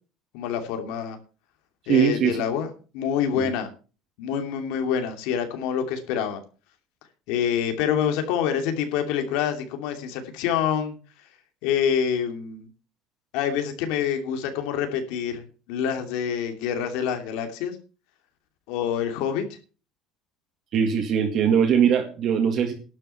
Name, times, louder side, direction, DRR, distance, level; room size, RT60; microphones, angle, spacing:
voice 1, 0.3-1.2 1.9-2.7 2.9-3.7 4.2-6.4 7.3-10.9 11.6-12.7 13.3-15.4 15.7-17.8 18.7-19.4, left 8 dB, 85° left, 6 dB, 2.7 m, -26 dB
voice 2, 1.8-2.4 3.4-3.5 20.7-22.7, right 8 dB, 40° right, 2 dB, 1.9 m, -21 dB
12.0 x 6.8 x 8.2 m, 0.36 s
cardioid pair, 180°, 0 cm